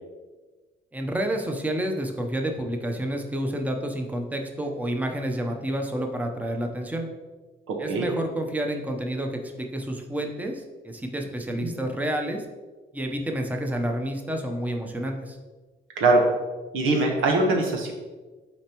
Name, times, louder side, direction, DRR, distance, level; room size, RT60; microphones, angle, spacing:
voice 1, 0.9-7.1 7.8-12.4 12.9-15.4, right 1 dB, 10° right, 3 dB, 0.8 m, -29 dB
voice 2, 7.7-8.1 11.5-11.7 16.0-16.2 16.7-17.9, right 2 dB, 90° right, 1 dB, 1.3 m, -22 dB
8.5 x 4.3 x 3.0 m, 1.3 s
cardioid pair, 90°, 20 cm